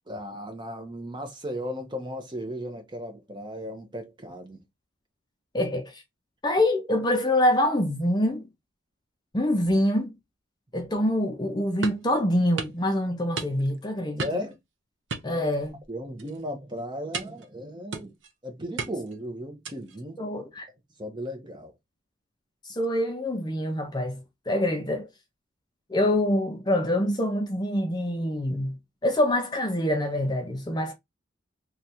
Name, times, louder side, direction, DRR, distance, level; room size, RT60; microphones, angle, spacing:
voice 1, 0.1-4.6 14.2-14.6 15.3-15.4 15.9-18.1 18.4-20.2 21.0-21.7, equal, 20° right, 0.8 m, -36 dB
voice 2, 5.5-6.0 6.4-8.5 9.3-10.1 10.7-14.3 15.2-15.8 20.2-20.7 22.6-25.1 25.9-30.9, left 1 dB, 20° left, 0.5 m, -25 dB
sound 1, 11.8-12.1 12.6-12.8 13.4-13.8 14.2-14.5 15.1-15.9 16.2-16.4 17.1-17.5 17.9-18.3 18.8-19.2 19.6-20.0, right 4 dB, 60° right, 0.7 m, -35 dB
3.2 x 2.3 x 4.1 m
head